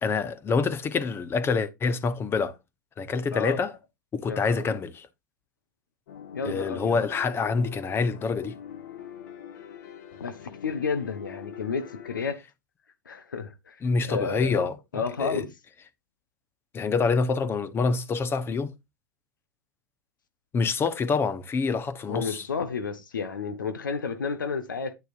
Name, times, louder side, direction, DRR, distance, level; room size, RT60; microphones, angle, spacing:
voice 1, 0.0-2.6 3.0-3.7 4.1-5.1 6.4-8.6 13.8-14.8 15.2-15.4 16.7-18.7 20.5-22.5, left 4 dB, 20° left, 1.0 m, -26 dB
voice 2, 4.3-4.8 6.3-7.0 10.2-12.4 13.0-13.8 14.1-14.7 14.9-15.5 22.1-24.9, left 5 dB, 85° left, 1.2 m, -31 dB
sound 1, 6.1-12.3, left 9 dB, 65° left, 1.3 m, -43 dB
9.6 x 6.6 x 2.6 m
hypercardioid pair, 105°, 10 cm